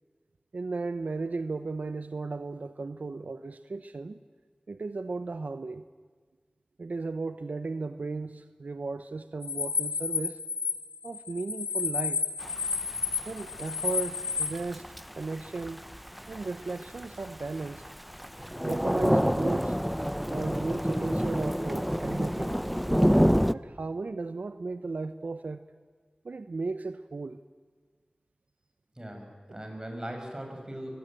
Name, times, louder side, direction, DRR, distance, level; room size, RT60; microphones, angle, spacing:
voice 1, 0.5-4.2 4.7-5.9 6.8-10.4 11.0-12.3 13.3-14.9 15.1-15.8 16.3-17.8 18.6-19.8 20.3-22.7 23.5-25.7 26.2-27.4, right 3 dB, 80° right, 11 dB, 0.7 m, -35 dB
sound 1, 9.4-14.5, left 5 dB, 60° left, 2.2 m, -31 dB
Thunder / Rain, 12.4-23.5, equal, ahead, 0.6 m, -28 dB
voice 2, 29.0-30.9, right 1 dB, 25° right, 2 dB, 6.8 m, -39 dB
23.0 x 18.5 x 9.0 m, 1.5 s
wide cardioid pair, 40°, 3 cm